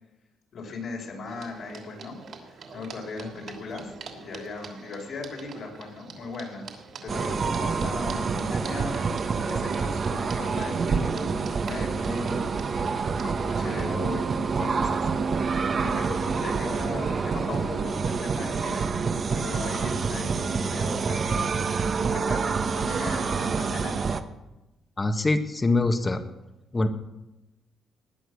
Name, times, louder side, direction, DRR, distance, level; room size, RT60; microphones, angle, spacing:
voice 1, 0.5-2.2 2.5-6.7 7.0-12.5 12.9-15.1 15.7-18.9 19.3-21.6 22.0-24.0, left 3 dB, 65° left, 1 dB, 5.3 m, -37 dB
sound 1, 1.3-14.0, right 5 dB, 60° right, 3.0 m, -46 dB
sound 2, 7.1-24.2, right 5 dB, 45° right, 1.1 m, -27 dB
voice 2, 25.0-26.2 26.7-26.9, left 2 dB, 25° left, 7 dB, 1.6 m, -23 dB
19.0 x 9.3 x 6.5 m, 1.0 s
cardioid pair, 90°, 0 cm